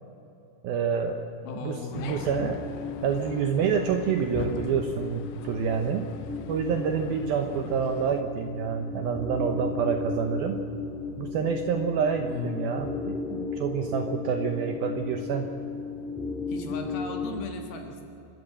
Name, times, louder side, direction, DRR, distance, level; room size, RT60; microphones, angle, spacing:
voice 1, 0.6-1.2 1.6-2.6 3.0-6.0 6.5-10.6 11.2-15.5, right 6 dB, 75° right, 5 dB, 2.3 m, -28 dB
voice 2, 1.4-2.5 12.3-12.8 16.5-18.0, left 5 dB, 60° left, 3 dB, 3.2 m, -37 dB
sound 1, 1.9-8.2, left 10 dB, 85° left, 3.1 m, -41 dB
sound 2, 2.2-17.4, left 3 dB, ahead, 0.8 m, -35 dB
28.0 x 13.0 x 7.7 m, 2.9 s
omnidirectional pair, 5.3 m